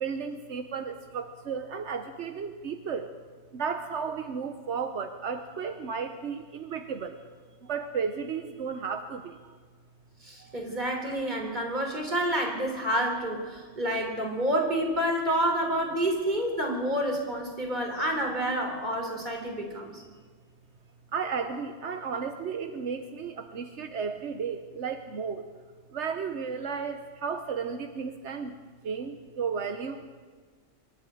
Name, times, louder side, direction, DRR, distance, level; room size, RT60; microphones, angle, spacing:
voice 1, 0.0-3.1 3.5-7.2 7.7-9.2 21.1-25.4 25.9-28.5 28.8-30.0, right 6 dB, 85° right, 8 dB, 1.3 m, -33 dB
voice 2, 10.2-20.0, right 1 dB, 40° right, 1 dB, 4.0 m, -29 dB
24.0 x 12.0 x 9.2 m, 1.5 s
omnidirectional pair, 1.2 m